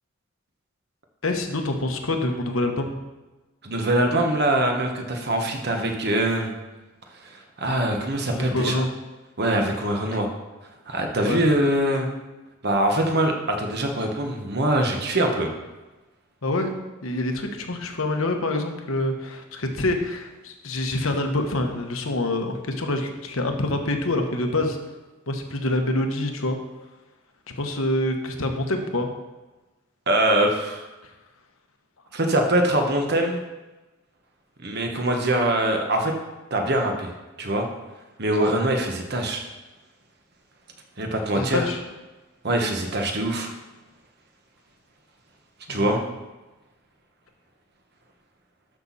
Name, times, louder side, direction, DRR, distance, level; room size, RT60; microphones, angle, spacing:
voice 1, 1.2-3.0 8.3-8.9 11.2-11.4 16.4-16.8 17.0-24.8 25.3-26.6 27.5-29.1 41.3-41.8 45.7-46.1, left 2 dB, 75° left, 5 dB, 1.2 m, -26 dB
voice 2, 3.6-6.5 7.6-8.8 9.4-10.3 10.9-12.1 12.6-15.5 30.1-30.9 32.1-33.4 34.6-36.1 36.5-37.1 37.4-37.7 38.2-39.4 41.0-41.7 42.4-43.5 45.7-46.0, right 1 dB, 50° right, 3 dB, 1.3 m, -23 dB
12.5 x 6.0 x 4.2 m, 1.1 s
head